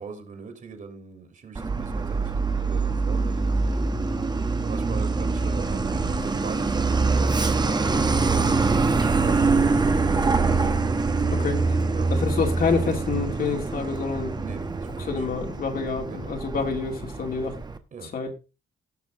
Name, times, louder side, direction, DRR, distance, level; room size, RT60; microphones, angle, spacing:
voice 1, 0.0-4.3 4.6-9.8 11.9-12.1 14.4-15.2 16.0-16.4 17.9-18.1, right 5 dB, 50° right, 6 dB, 3.4 m, -41 dB
Truck, 1.5-17.8, right 4 dB, 25° right, 1.2 m, -24 dB
voice 2, 11.3-11.8 12.1-14.5 15.1-17.6 18.1-18.3, left 5 dB, 55° left, 3 dB, 2.8 m, -27 dB
17.5 x 6.2 x 3.8 m, 0.29 s
cardioid pair, 110°, 18 cm